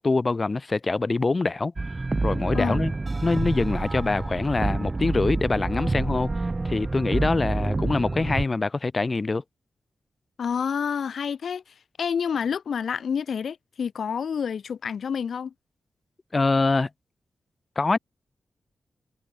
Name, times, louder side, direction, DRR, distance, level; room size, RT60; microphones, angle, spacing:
voice 1, 0.0-1.7 2.2-2.9 3.2-6.3 6.6-9.4 16.3-16.9 17.8-18.0, left 3 dB, 25° left, 7.4 m, -24 dB
sound 1, 1.8-8.4, right 3 dB, 25° right, 2.8 m, -27 dB
voice 2, 10.4-15.5, left 7 dB, 70° left, 5.9 m, -28 dB
wide cardioid pair, 175°, 0 cm